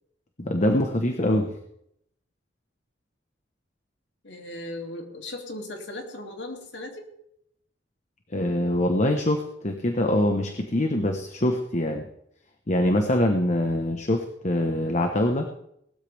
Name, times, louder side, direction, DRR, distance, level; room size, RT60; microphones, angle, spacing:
voice 1, 0.4-1.6 8.3-12.1 12.7-15.5, left 1 dB, 40° left, 5 dB, 1.2 m, -24 dB
voice 2, 4.2-7.1, left 1 dB, 75° left, 2 dB, 2.8 m, -37 dB
19.0 x 13.0 x 3.5 m, 0.74 s
head